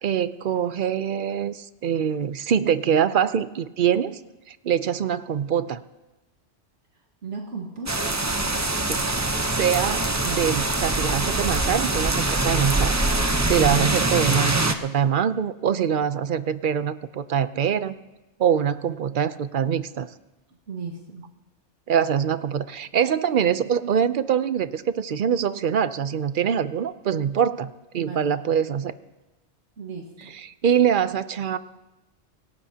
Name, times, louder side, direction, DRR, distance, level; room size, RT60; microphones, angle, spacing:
voice 1, 0.0-4.2 4.5-5.8 8.9-9.0 9.6-12.9 13.4-18.0 18.4-20.1 21.9-28.9 30.2-31.6, right 8 dB, 55° right, 13 dB, 0.7 m, -24 dB
voice 2, 7.2-8.1 20.7-21.3 27.9-28.3 29.8-30.3, right 4 dB, 90° right, -1 dB, 2.0 m, -36 dB
sound 1, 7.9-14.7, right 2 dB, 20° right, 0.7 m, -23 dB
26.0 x 17.5 x 2.8 m, 1.1 s
omnidirectional pair, 1.2 m